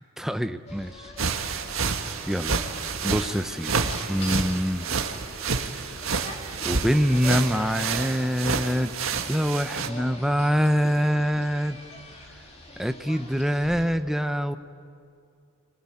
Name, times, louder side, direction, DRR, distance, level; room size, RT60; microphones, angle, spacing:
voice 1, 0.2-1.1 1.5-1.8 2.3-2.6 3.0-4.9 5.7-5.9 6.6-8.9 9.3-11.8 12.3-12.4 12.8-14.6, equal, ahead, 8 dB, 0.8 m, -25 dB
sound 1, 0.7-13.9, left 1 dB, 30° left, 2.9 m, -44 dB
sound 2, 1.2-9.9, right 5 dB, 80° right, 1.6 m, -29 dB
25.0 x 20.0 x 10.0 m, 2.4 s
head